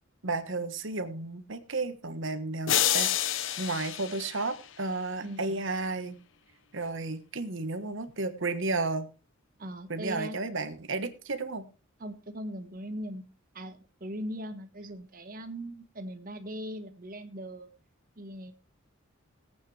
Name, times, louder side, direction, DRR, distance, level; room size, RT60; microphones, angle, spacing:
voice 1, 0.2-3.3 3.6-6.2 6.7-9.1 9.9-11.7, right 3 dB, 65° right, 9 dB, 1.4 m, -33 dB
sound 1, 2.7-5.0, left 10 dB, 65° left, 0.8 m, -29 dB
voice 2, 5.2-5.6 9.6-10.3 12.0-13.2 13.5-17.7 18.2-18.5, equal, 45° right, 7 dB, 1.5 m, -39 dB
18.5 x 8.7 x 3.3 m, 0.32 s
head